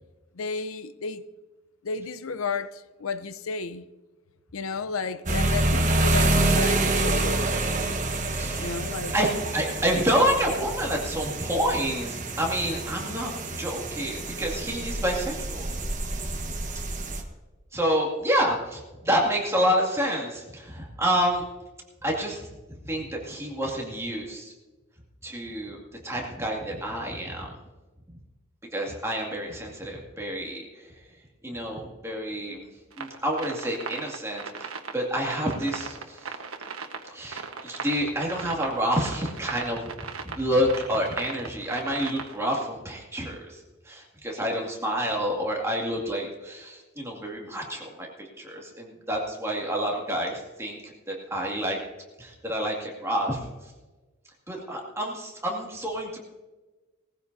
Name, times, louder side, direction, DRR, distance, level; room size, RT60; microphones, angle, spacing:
voice 1, 0.3-1.2 1.8-3.8 4.5-8.0 8.6-9.1, left 4 dB, 80° left, 0.7 m, -33 dB
sound 1, 5.3-17.2, right 2 dB, 35° right, 1.2 m, -27 dB
voice 2, 8.3-8.7 9.1-13.3 13.6-15.7 17.7-21.4 22.0-22.5 22.8-24.5 25.2-27.5 28.7-30.9 31.4-32.7 33.0-36.3 37.1-43.6 43.9-51.8 52.2-53.4 54.5-56.2, equal, 15° right, 2.2 m, -28 dB
sound 2, 32.9-42.7, right 5 dB, 85° right, 1.2 m, -38 dB
19.5 x 15.0 x 2.7 m
head